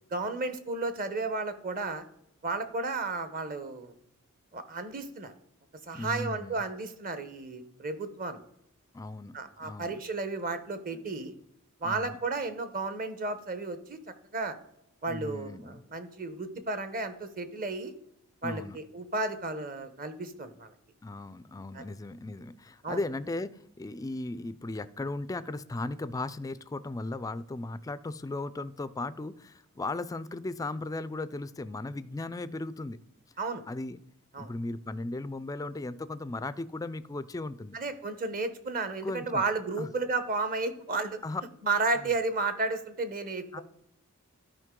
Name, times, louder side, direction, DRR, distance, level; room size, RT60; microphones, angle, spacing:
voice 1, 0.1-2.0 2.4-3.9 4.5-5.3 5.9-8.4 9.3-11.3 11.8-14.6 15.0-17.9 18.4-20.7 21.7-21.8 22.8-23.0 33.4-33.6 34.3-34.5 37.7-41.2 41.6-43.6, right 3 dB, 40° right, 10 dB, 0.8 m, -33 dB
voice 2, 5.9-6.6 8.9-10.0 10.9-11.0 11.8-12.2 15.1-15.8 18.4-18.8 21.0-33.0 33.7-34.0 34.4-37.8 39.0-39.4 39.8-39.9 41.2-41.4 43.5-43.6, left 2 dB, 15° left, 15 dB, 0.3 m, -37 dB
12.5 x 5.1 x 3.7 m, 0.77 s
head